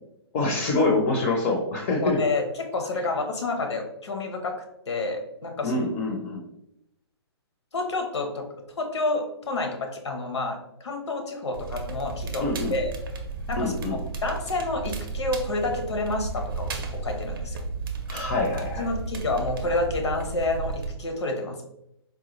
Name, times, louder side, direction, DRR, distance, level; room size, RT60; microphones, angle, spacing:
voice 1, 0.3-2.2 5.6-6.4 12.4-12.7 13.6-14.0 18.1-18.9, left 2 dB, 30° left, 1 dB, 0.5 m, -25 dB
voice 2, 2.0-4.5 4.9-5.8 7.7-8.5 8.8-12.9 13.5-17.6 18.8-21.6, left 2 dB, 85° left, 3 dB, 0.8 m, -29 dB
Crackle, 11.5-20.9, right 4 dB, 55° right, 0.6 m, -33 dB
3.9 x 2.2 x 2.9 m, 0.83 s
hypercardioid pair, 150°, 14 cm